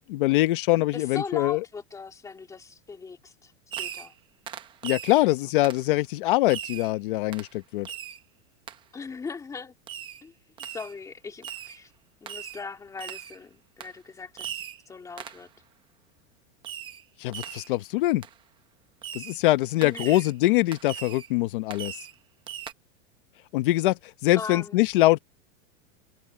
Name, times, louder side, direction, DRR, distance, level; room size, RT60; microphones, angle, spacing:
voice 1, 0.1-1.6 4.8-7.9 17.2-18.2 19.1-22.0 23.5-25.2, left 18 dB, 45° left, 0.8 m, -23 dB
voice 2, 0.9-3.5 3.8-4.1 5.1-5.3 8.9-9.7 10.2-10.3 10.7-11.9 12.2-15.5 19.8-20.3 24.3-24.8, left 5 dB, 10° left, 2.3 m, -39 dB
Fireworks, 3.7-4.2 4.5-5.2 5.6-5.9 6.5-6.9 7.3-7.5 7.8-8.2 8.7-8.8 9.9-10.2 10.6-10.9 11.4-11.8 12.3-12.6 13.0-13.4 13.8-13.9 14.4-14.8 15.2-15.4 16.6-17.0 17.3-17.7 18.2-18.3 19.0-19.4 19.8-20.3 20.7-21.3 21.7-22.2 22.5-22.7, right 9 dB, 15° right, 0.7 m, -39 dB
supercardioid pair, 175°, 36 cm